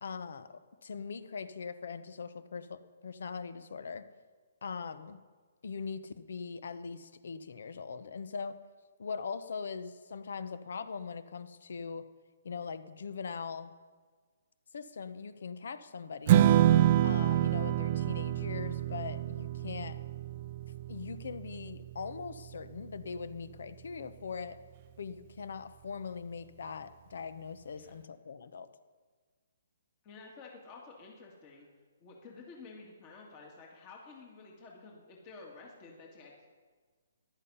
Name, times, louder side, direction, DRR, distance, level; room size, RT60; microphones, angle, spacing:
voice 1, 0.0-4.1 4.6-5.2 5.6-8.6 9.0-12.1 12.4-13.7 14.7-16.4 17.0-20.0 20.9-24.6 25.0-28.7, left 5 dB, 70° left, 13 dB, 0.8 m, -41 dB
Strum, 16.3-22.6, right 12 dB, 40° right, 0.4 m, -27 dB
voice 2, 30.0-31.7 32.0-36.5, left 4 dB, 30° left, -1 dB, 2.1 m, -51 dB
14.5 x 11.5 x 5.6 m, 1.5 s
hypercardioid pair, 145°, 0 cm